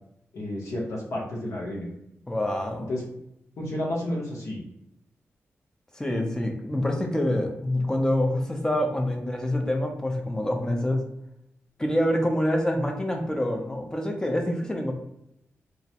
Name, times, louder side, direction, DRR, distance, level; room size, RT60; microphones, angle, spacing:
voice 1, 0.3-1.9 2.9-3.0 3.6-4.6, left 1 dB, 85° left, -2 dB, 0.8 m, -31 dB
voice 2, 2.3-2.9 5.9-11.0 11.8-14.9, left 1 dB, 15° left, 3 dB, 0.4 m, -26 dB
2.3 x 2.0 x 2.7 m, 0.81 s
wide cardioid pair, 100°, 5 cm